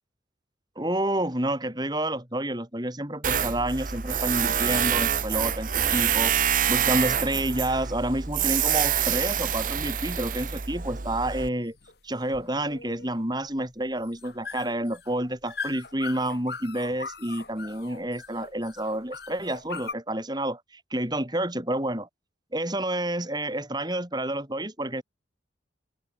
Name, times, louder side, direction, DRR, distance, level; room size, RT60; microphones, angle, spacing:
voice 1, 0.8-11.8 12.0-20.6 20.9-22.1 22.5-25.0, right 1 dB, 20° right, 4.6 m, -29 dB
Tools, 3.2-11.5, right 9 dB, 45° right, 0.9 m, -26 dB
sound 1, 10.8-19.9, left 4 dB, 55° left, 5.1 m, -41 dB
open air
head